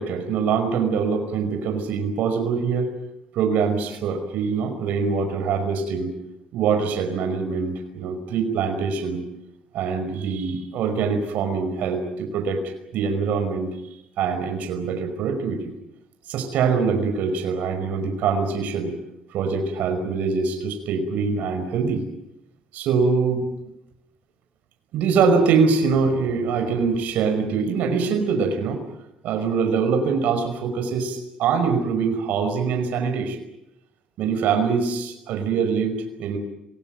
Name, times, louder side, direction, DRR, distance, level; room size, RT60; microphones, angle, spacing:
voice 1, 0.0-2.9 3.3-6.1 6.5-9.2 9.7-12.6 12.9-13.7 14.2-15.7 16.3-18.9 19.3-22.0 22.7-23.5 24.9-28.8 29.2-33.4 34.2-36.4, right 5 dB, 75° right, 5 dB, 5.4 m, -23 dB
26.0 x 20.0 x 9.3 m, 0.87 s
cardioid pair, 120°, 3 cm